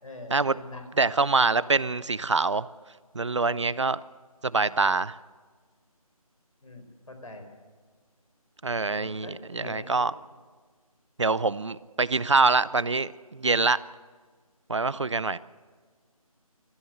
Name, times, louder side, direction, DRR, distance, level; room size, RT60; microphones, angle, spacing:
voice 1, 0.0-1.0 1.3-1.4 6.6-6.8 7.1-7.4 8.9-9.9, left 2 dB, 65° left, 5 dB, 4.9 m, -43 dB
voice 2, 0.9-2.7 3.1-4.0 4.4-5.2 8.6-10.1 11.2-13.8 14.7-15.4, right 3 dB, 50° right, 18 dB, 0.6 m, -25 dB
23.5 x 14.5 x 8.0 m, 1.5 s
figure-of-eight pair, 165°, 19 cm